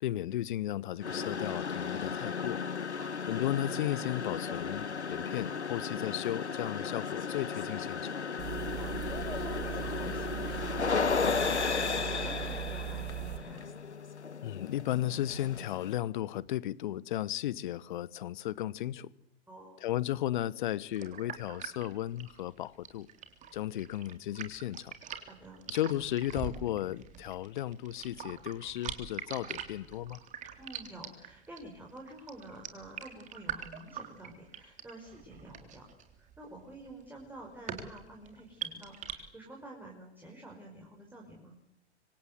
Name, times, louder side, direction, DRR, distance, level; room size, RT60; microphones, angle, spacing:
voice 1, 0.0-2.6 3.3-8.2 14.4-19.1 19.8-23.1 23.5-24.9 25.7-30.2, left 13 dB, 45° left, 1.1 m, -35 dB
sound 1, 1.0-15.9, left 5 dB, 75° left, 1.7 m, -35 dB
sound 2, 8.4-13.4, right 16 dB, 45° right, 3.3 m, -39 dB
voice 2, 8.7-13.6 19.5-19.8 25.3-25.6 30.6-35.9 36.2-41.6, right 1 dB, 5° right, 5.4 m, -49 dB
sound 3, 20.9-39.1, right 9 dB, 20° right, 3.5 m, -43 dB
25.5 x 25.5 x 8.0 m
figure-of-eight pair, 110°, 34 cm